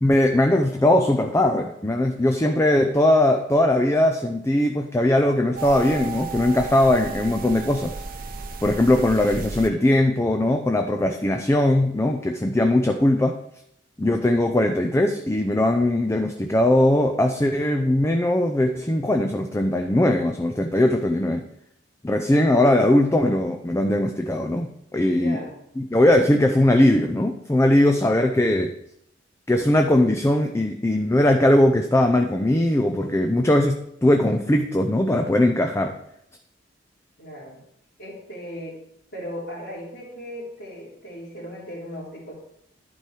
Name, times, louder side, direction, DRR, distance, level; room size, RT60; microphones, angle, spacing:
voice 1, 0.0-8.0 8.6-13.4 14.0-21.4 22.0-25.4 25.8-28.7 29.5-36.0, left 1 dB, 15° left, 4 dB, 0.5 m, -20 dB
sound 1, 5.6-9.7, right 5 dB, 50° right, 0.8 m, -34 dB
voice 2, 25.1-25.6 37.2-37.6 38.0-38.8 39.1-42.3, equal, 70° left, -10 dB, 3.0 m, -37 dB
11.0 x 4.6 x 4.8 m, 0.75 s
head